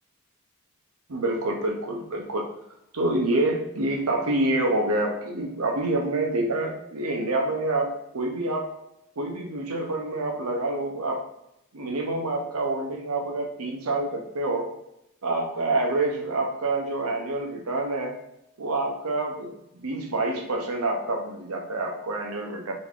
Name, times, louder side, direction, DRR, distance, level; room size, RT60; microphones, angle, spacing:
voice 1, 1.1-2.5 2.9-8.7 9.2-11.2 11.7-14.7 15.2-18.1 18.6-22.7, right 2 dB, 90° right, 3 dB, 0.8 m, -27 dB
4.0 x 3.5 x 3.7 m, 0.82 s
head